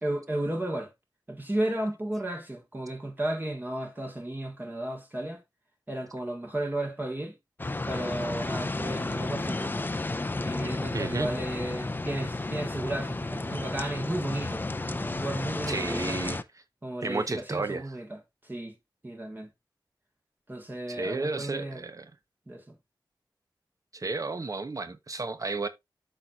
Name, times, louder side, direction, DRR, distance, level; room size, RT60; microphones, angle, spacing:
voice 1, 0.0-0.9 1.3-5.4 5.9-7.3 7.9-9.9 10.4-16.2 16.8-18.7 19.0-19.5 20.5-21.8 22.5-22.8, right 1 dB, 25° right, 1.6 m, -34 dB
sound 1, 7.6-16.4, left 2 dB, 25° left, 0.5 m, -32 dB
voice 2, 10.9-11.3 15.7-16.4 17.0-17.8 20.9-22.1 23.9-25.7, right 3 dB, 45° right, 1.0 m, -32 dB
13.0 x 4.4 x 2.5 m
wide cardioid pair, 90°, 8 cm